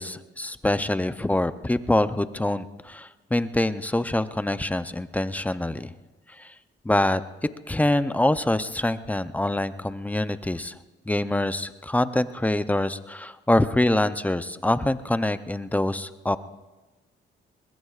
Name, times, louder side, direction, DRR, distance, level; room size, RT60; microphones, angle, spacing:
voice 1, 0.0-5.9 6.4-6.5 6.8-7.2 7.7-10.7 11.1-16.4, left 1 dB, 10° left, 12 dB, 0.6 m, -25 dB
21.5 x 21.0 x 2.4 m, 1.2 s
cardioid pair, 90°, 20 cm